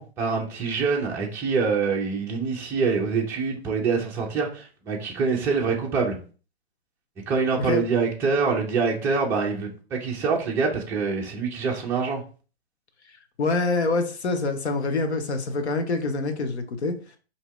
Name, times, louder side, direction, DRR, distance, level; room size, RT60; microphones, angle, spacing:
voice 1, 0.0-6.2 7.3-12.2, right 5 dB, 10° right, 0.4 m, -25 dB
voice 2, 13.4-17.0, left 3 dB, 85° left, 0.9 m, -25 dB
4.5 x 2.8 x 3.0 m
hypercardioid pair, 140°, 32 cm